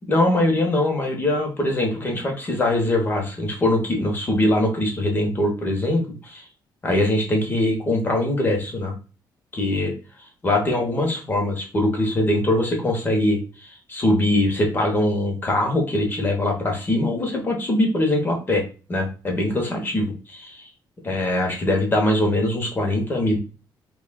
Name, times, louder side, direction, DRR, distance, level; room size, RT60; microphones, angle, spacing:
voice 1, 0.1-6.4 6.8-8.9 9.5-9.9 10.4-18.6 18.9-20.6 21.0-23.4, left 1 dB, 25° left, 1 dB, 0.9 m, -22 dB
5.4 x 2.4 x 2.2 m, 0.35 s
cardioid pair, 170°, 8 cm